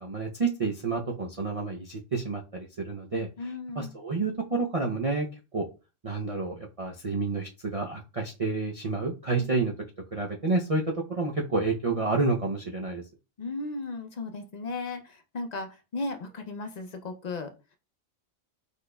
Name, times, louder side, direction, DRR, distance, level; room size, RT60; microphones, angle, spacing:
voice 1, 0.0-3.3 3.8-5.3 5.5-5.7 6.0-9.7 10.1-13.0, right 3 dB, 40° right, -1 dB, 0.5 m, -29 dB
voice 2, 3.4-3.9 9.4-9.5 13.4-17.5, left 3 dB, 50° left, 6 dB, 0.5 m, -36 dB
4.9 x 4.2 x 2.2 m, 0.31 s
omnidirectional pair, 1.3 m